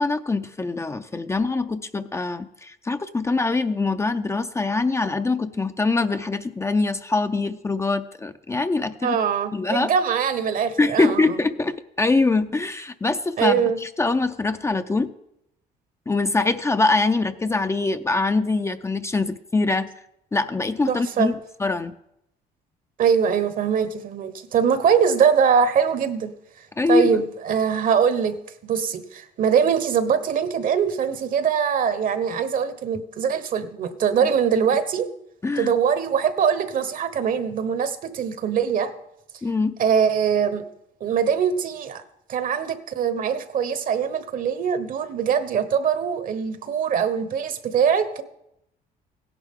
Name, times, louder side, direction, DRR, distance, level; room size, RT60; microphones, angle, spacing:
voice 1, 0.0-9.2 9.5-9.9 10.8-15.1 16.1-19.9 20.3-21.9 26.8-27.2 34.2-34.3 35.4-35.7 39.4-39.8, left 3 dB, 15° left, 9 dB, 0.5 m, -23 dB
voice 2, 9.0-11.4 13.4-13.8 20.9-21.3 23.0-26.3 26.9-28.4 28.7-35.1 35.6-38.9 39.8-40.6 41.0-42.0 42.3-48.2, right 7 dB, 55° right, 11 dB, 1.1 m, -22 dB
16.5 x 11.0 x 3.7 m, 0.81 s
cardioid pair, 110°, 17 cm